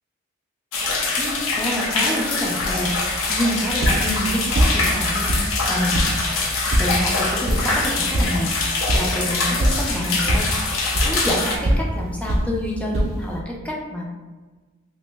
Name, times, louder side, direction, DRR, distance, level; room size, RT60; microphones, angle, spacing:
sound 1, 0.7-11.6, left 3 dB, 70° left, 0.5 m, -24 dB
voice 1, 1.2-5.3 5.7-6.1 6.8-10.5 11.0-14.1, equal, 5° left, -3 dB, 0.5 m, -27 dB
sound 2, 2.6-13.4, right 1 dB, 70° right, 0.5 m, -25 dB
2.9 x 2.1 x 3.3 m, 1.3 s
head